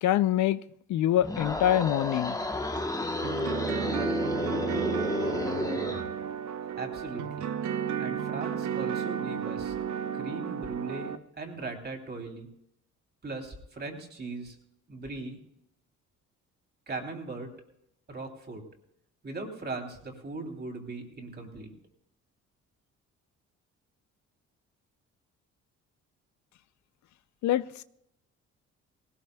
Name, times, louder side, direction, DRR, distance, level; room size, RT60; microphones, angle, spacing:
voice 1, 0.0-0.6 0.9-2.4 27.4-27.7, left 12 dB, 70° left, 0.5 m, -24 dB
sound 1, 1.2-6.1, left 2 dB, 10° left, 1.0 m, -31 dB
sound 2, 3.2-11.2, right 8 dB, 70° right, 0.8 m, -33 dB
voice 2, 6.8-7.5 8.0-9.7 10.1-12.5 13.2-14.6 14.9-15.4 16.9-17.5 18.1-18.6 19.2-21.7, right 3 dB, 35° right, 3.1 m, -39 dB
19.0 x 18.5 x 2.3 m
cardioid pair, 90°, 30 cm